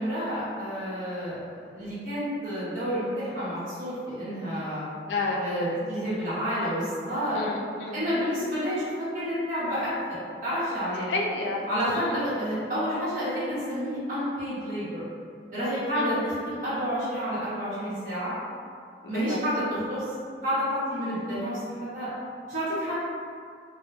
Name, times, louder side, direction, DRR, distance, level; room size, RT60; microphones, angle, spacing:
voice 1, 0.0-4.9 5.4-7.4 7.9-8.8 9.1-11.1 11.7-15.0 15.5-18.3 19.1-19.6 19.9-20.0 20.4-21.6 21.9-22.1 22.5-22.9, equal, 45° right, -12 dB, 0.9 m, -29 dB
voice 2, 5.1-5.5 7.3-8.0 11.1-11.7 11.9-12.3 15.9-16.2 19.0-19.4, left 3 dB, 80° left, -1 dB, 0.4 m, -30 dB
2.2 x 2.1 x 3.3 m, 2.2 s
head